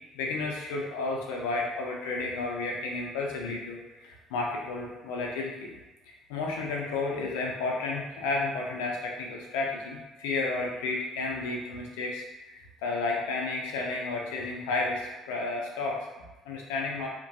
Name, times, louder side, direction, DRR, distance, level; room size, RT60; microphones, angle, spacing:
voice 1, 0.1-5.7 6.3-17.1, left 3 dB, 75° left, -1 dB, 0.5 m, -32 dB
2.9 x 2.6 x 2.2 m, 1.1 s
hypercardioid pair, 55°, 0 cm